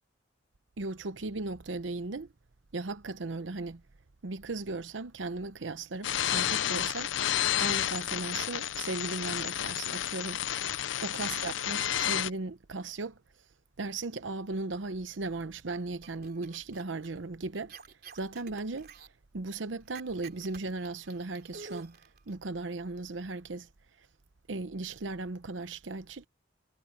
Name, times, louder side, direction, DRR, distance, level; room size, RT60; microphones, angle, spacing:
voice 1, 0.8-2.3 2.7-3.8 4.2-7.1 7.6-10.4 11.0-13.2 13.8-17.7 18.1-18.9 19.3-22.0 22.3-23.7 24.0-24.1 24.5-26.3, right 3 dB, 85° right, 0.8 m, -37 dB
sound 1, 6.0-12.3, left 11 dB, 85° left, 0.5 m, -31 dB
sound 2, 16.0-17.2 17.5-19.1 19.9-22.3, right 4 dB, 55° right, 3.2 m, -49 dB
head